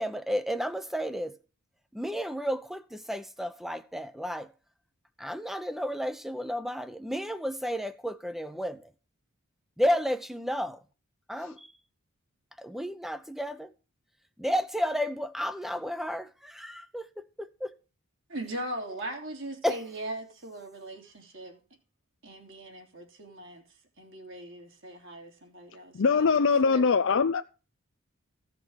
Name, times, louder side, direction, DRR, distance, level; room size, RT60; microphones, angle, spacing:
voice 1, 0.0-1.3 1.9-4.5 5.2-8.8 9.8-10.8 11.3-11.7 12.6-13.7 14.4-17.7 19.6-19.8, equal, ahead, 0.8 m, -32 dB
voice 2, 18.3-21.6 22.2-23.6 24.0-26.9, right 1 dB, 60° right, 3.3 m, -40 dB
voice 3, 25.9-27.4, left 5 dB, 60° left, 0.5 m, -22 dB
15.5 x 5.9 x 6.5 m
head